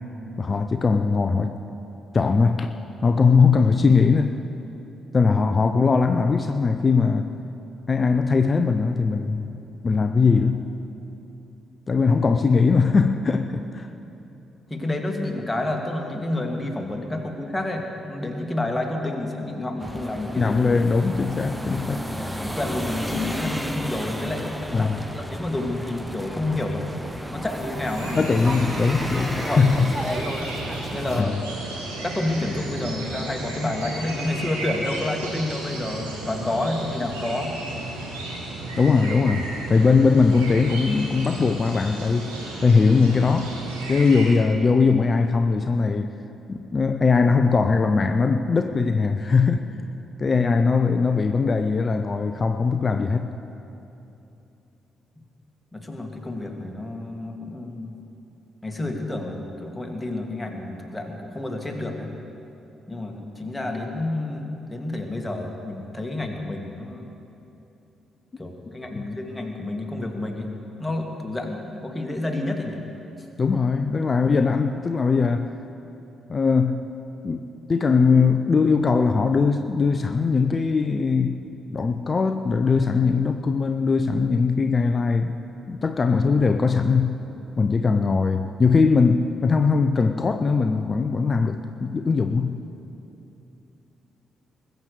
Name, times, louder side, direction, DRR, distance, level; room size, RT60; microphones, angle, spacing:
voice 1, 0.4-1.6 2.1-2.7 3.0-4.4 5.1-7.3 7.9-9.5 9.8-10.7 11.9-13.9 20.4-22.1 24.7-25.0 28.1-30.0 31.1-31.4 38.8-42.3 42.6-43.5 43.9-46.1 46.5-49.7 50.2-53.3 68.9-69.0 73.4-75.5 76.3-76.9 77.2-85.4 85.7-87.2 87.6-92.7, left 4 dB, 35° left, 0.6 m, -20 dB
voice 2, 14.7-20.5 22.3-28.2 29.5-30.4 30.9-31.4 32.0-37.5 55.7-57.9 58.6-62.1 62.9-67.1 68.4-70.5 70.8-72.8, left 2 dB, 15° left, 2.1 m, -29 dB
sound 1, 19.8-31.2, equal, 5° right, 1.0 m, -32 dB
sound 2, 27.8-44.3, right 2 dB, 80° right, 2.4 m, -34 dB
20.5 x 8.0 x 6.7 m
figure-of-eight pair, 40°, 0 cm